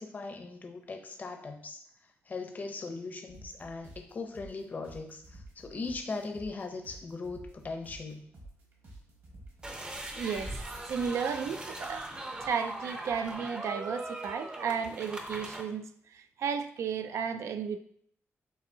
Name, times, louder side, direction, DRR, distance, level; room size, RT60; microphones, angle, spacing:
voice 1, 0.0-1.8 2.2-8.2, left 3 dB, 35° left, 4 dB, 0.6 m, -39 dB
sound 1, 3.3-9.8, right 1 dB, 55° right, 1.3 m, -52 dB
sound 2, 9.6-15.6, right 1 dB, 20° right, 0.5 m, -40 dB
voice 2, 10.1-10.5 10.9-12.1 12.4-17.8, right 6 dB, 75° right, 9 dB, 0.3 m, -34 dB
6.8 x 2.7 x 2.7 m, 0.64 s
wide cardioid pair, 130°, 5 cm